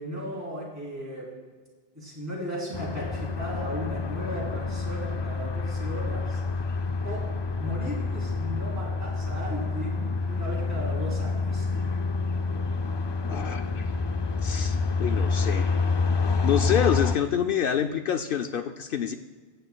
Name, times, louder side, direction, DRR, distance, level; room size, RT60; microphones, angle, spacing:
voice 1, 0.0-1.5 1.9-6.4 7.0-7.2 7.6-11.7, equal, 15° right, -7 dB, 3.4 m, -36 dB
sound 1, 2.7-17.1, left 4 dB, 45° left, 0.3 m, -28 dB
voice 2, 13.3-13.9 14.4-15.7 16.4-19.1, left 9 dB, 65° left, 6 dB, 0.7 m, -27 dB
22.5 x 7.9 x 2.2 m, 1.4 s
omnidirectional pair, 1.1 m